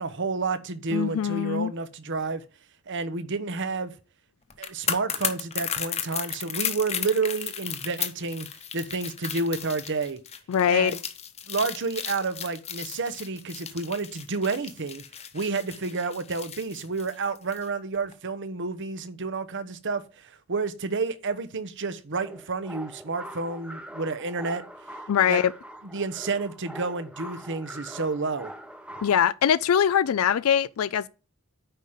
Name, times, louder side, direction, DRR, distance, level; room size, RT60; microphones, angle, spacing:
voice 1, 0.0-2.4 2.9-3.9 4.6-8.5 8.7-10.2 10.7-11.0 11.5-15.0 15.3-24.6 25.3-25.4 25.8-28.5, right 4 dB, 60° right, 0.9 m, -30 dB
voice 2, 0.9-1.7 10.5-10.9 25.1-25.5 29.0-31.1, left 8 dB, 75° left, 0.4 m, -22 dB
sound 1, 4.5-17.7 17.9-18.1, left 8 dB, 30° left, 0.9 m, -34 dB
sound 2, 22.1-29.1, right 1 dB, 5° right, 0.7 m, -43 dB
9.1 x 5.0 x 5.7 m
head